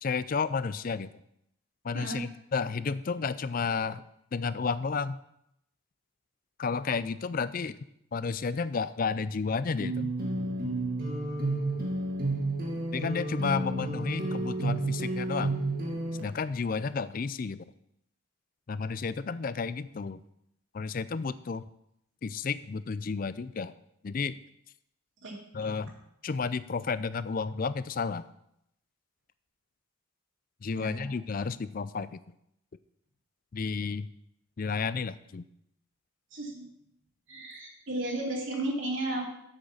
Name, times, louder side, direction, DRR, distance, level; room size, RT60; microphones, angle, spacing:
voice 1, 0.0-1.1 1.8-4.0 4.3-5.2 6.6-7.8 8.1-10.1 12.9-15.6 16.2-17.7 18.7-20.2 20.7-21.6 22.2-23.7 24.0-24.4 25.5-25.9 26.2-28.2 30.6-32.2 33.5-34.1 34.6-35.4, left 5 dB, 40° left, 16 dB, 0.4 m, -32 dB
sound 1, 9.8-16.2, right 2 dB, 45° right, 1.9 m, -31 dB
voice 2, 36.3-36.7 37.3-39.3, right 1 dB, 60° right, -1 dB, 2.8 m, -33 dB
8.0 x 6.4 x 7.0 m, 0.78 s
head